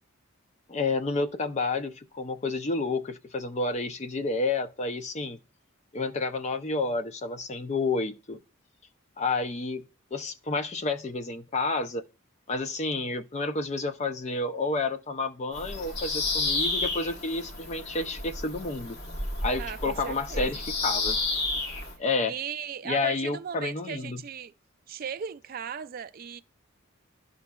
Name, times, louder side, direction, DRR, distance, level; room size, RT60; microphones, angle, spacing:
voice 1, 0.7-5.4 5.9-8.4 9.2-9.8 10.1-12.0 12.5-19.0 19.4-21.2 22.0-22.3 22.8-24.2, left 3 dB, 30° left, 0.4 m, -30 dB
Bird vocalization bird call bird song, 15.5-22.0, left 3 dB, 50° left, 1.1 m, -31 dB
voice 2, 19.6-20.5 22.3-24.5 24.9-26.4, right 7 dB, 45° right, 0.3 m, -37 dB
12.0 x 5.1 x 2.2 m
head